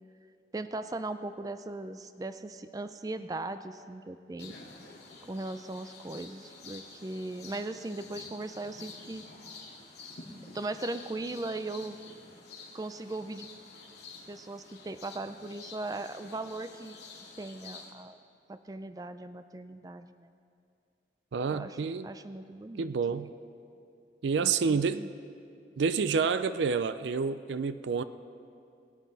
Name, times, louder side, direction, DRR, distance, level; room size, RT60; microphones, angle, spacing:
voice 1, 0.5-4.6 5.3-9.2 10.5-12.0 12.7-13.5 14.3-17.0 17.4-18.2 18.5-20.3 21.5-23.1 24.4-25.1, right 2 dB, 20° right, 10 dB, 0.4 m, -38 dB
sound 1, 4.4-17.9, left 4 dB, 75° left, 2.2 m, -49 dB
voice 2, 21.3-22.1 22.8-23.3 24.2-25.1 25.8-28.0, right 5 dB, 85° right, 12 dB, 0.4 m, -28 dB
22.0 x 8.3 x 4.0 m, 2.5 s
head